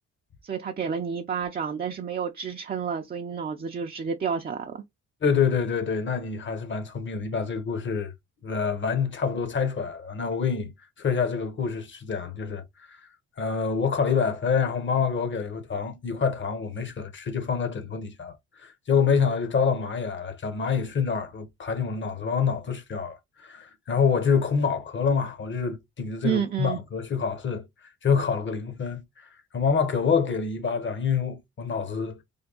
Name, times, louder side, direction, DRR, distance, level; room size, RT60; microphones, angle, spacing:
voice 1, 0.4-4.8 26.2-26.8, right 7 dB, 30° right, 0.5 m, -30 dB
voice 2, 5.2-8.1 8.4-10.7 11.0-12.6 13.4-18.4 18.6-27.6 28.0-29.0 29.5-32.2, left 6 dB, 40° left, 1.0 m, -26 dB
3.5 x 2.2 x 3.8 m
cardioid pair, 90°, 30 cm